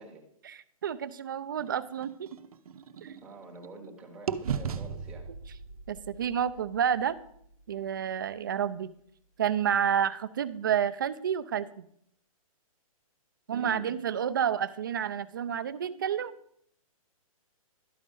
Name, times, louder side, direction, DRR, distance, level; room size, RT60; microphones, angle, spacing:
voice 1, 0.5-2.3 3.0-3.1 5.9-7.2 7.7-8.9 9.4-11.8 13.5-16.4, right 8 dB, 35° right, 14 dB, 0.4 m, -30 dB
sound 1, 1.6-3.9 4.3-8.2, right 7 dB, 80° right, 0.7 m, -38 dB
voice 2, 3.2-5.3 13.5-14.0, right 2 dB, 5° right, -1 dB, 0.8 m, -45 dB
12.0 x 5.1 x 5.4 m, 0.70 s
hypercardioid pair, 180°, 18 cm